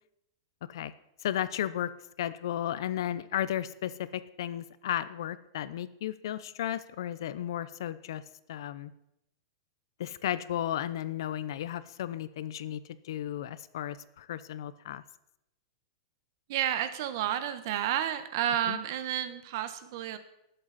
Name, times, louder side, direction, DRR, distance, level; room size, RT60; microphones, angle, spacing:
voice 1, 1.2-1.9 2.2-8.2 8.5-8.9 10.0-12.8 13.0-15.0 18.7-18.8, left 11 dB, 70° left, 16 dB, 0.7 m, -34 dB
voice 2, 16.5-20.2, right 10 dB, 50° right, 11 dB, 1.1 m, -31 dB
18.5 x 7.9 x 4.1 m, 0.82 s
supercardioid pair, 160°, 2 cm